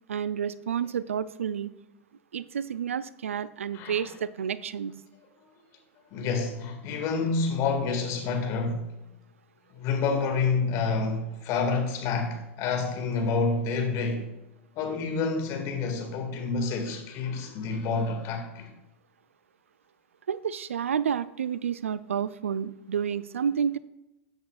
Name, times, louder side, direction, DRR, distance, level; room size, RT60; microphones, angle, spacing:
voice 1, 0.1-1.7 2.3-4.9 20.3-23.8, right 8 dB, 80° right, 0.3 m, -30 dB
voice 2, 3.7-4.1 5.4-5.5 6.1-8.9 9.7-14.3 14.8-18.7, left 4 dB, 45° left, 1.9 m, -28 dB
13.5 x 8.0 x 2.4 m
figure-of-eight pair, 90°, 7 cm